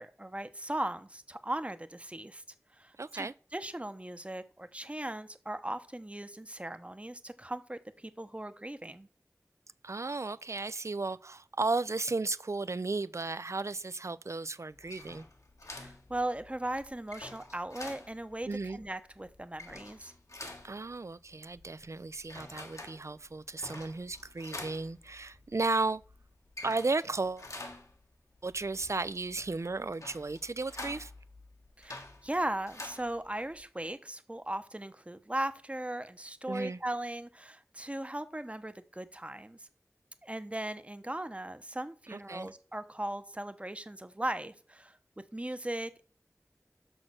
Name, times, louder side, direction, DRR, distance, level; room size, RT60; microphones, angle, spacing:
voice 1, 0.0-2.4 2.7-9.1 15.7-20.1 31.8-39.7 40.2-45.0 45.3-46.0, right 1 dB, 20° right, 0.8 m, -38 dB
voice 2, 3.0-3.3 9.8-15.3 18.5-18.8 20.6-26.0 26.6-27.5 28.4-31.1 36.5-36.8 42.1-42.5, right 3 dB, 55° right, 0.5 m, -34 dB
sound 1, 14.7-33.6, left 2 dB, 65° left, 1.4 m, -48 dB
6.3 x 6.3 x 6.2 m
wide cardioid pair, 45°, 6 cm